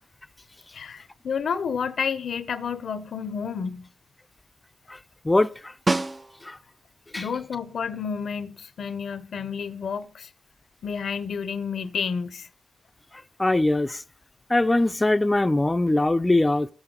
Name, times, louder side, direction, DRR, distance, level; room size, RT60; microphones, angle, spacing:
voice 1, 0.7-3.9 7.2-10.3 10.8-12.5, left 6 dB, 80° left, 0.7 m, -30 dB
voice 2, 5.2-5.7 6.4-6.6 7.1-7.3 13.4-14.0 14.5-16.7, left 2 dB, 25° left, 0.5 m, -22 dB
Snare drum, 5.9-6.8 11.2-11.3, right 2 dB, 35° right, 0.6 m, -27 dB
20.0 x 8.0 x 3.8 m
cardioid pair, 55°, 0 cm